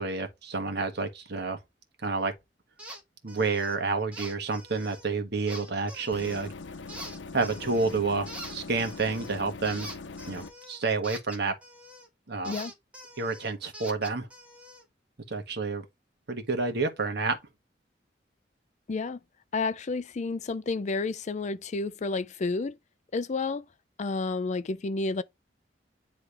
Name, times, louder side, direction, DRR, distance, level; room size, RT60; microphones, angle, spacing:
voice 1, 0.0-1.6 2.0-2.3 3.2-6.5 7.3-9.9 10.3-11.5 12.3-12.5 13.2-14.3 15.3-15.8 16.3-17.4, right 4 dB, 65° right, 1.4 m, -29 dB
sound 1, 2.8-3.0 3.3-3.8 4.1-5.0 5.5-6.5 6.9-8.0 8.3-12.1 12.4-14.8, right 1 dB, 5° right, 1.8 m, -44 dB
sound 2, 6.1-10.5, left 3 dB, 90° left, 0.7 m, -42 dB
voice 2, 18.9-19.2 19.5-22.8 23.1-23.7 24.0-25.2, left 3 dB, 40° left, 0.4 m, -30 dB
9.7 x 3.4 x 3.3 m
head